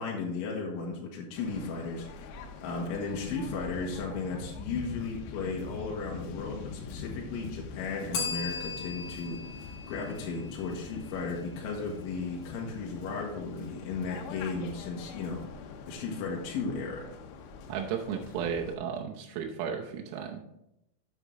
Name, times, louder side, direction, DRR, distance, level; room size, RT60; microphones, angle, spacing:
voice 1, 0.0-17.1, left 4 dB, 75° left, -2 dB, 3.6 m, -35 dB
Waves surf, 1.4-18.7, left 5 dB, 90° left, 3.7 m, -44 dB
Bell, 8.1-10.9, left 5 dB, 55° left, 3.0 m, -38 dB
voice 2, 17.7-20.4, right 7 dB, 90° right, 1 dB, 3.6 m, -34 dB
8.2 x 8.1 x 3.7 m, 0.84 s
omnidirectional pair, 5.9 m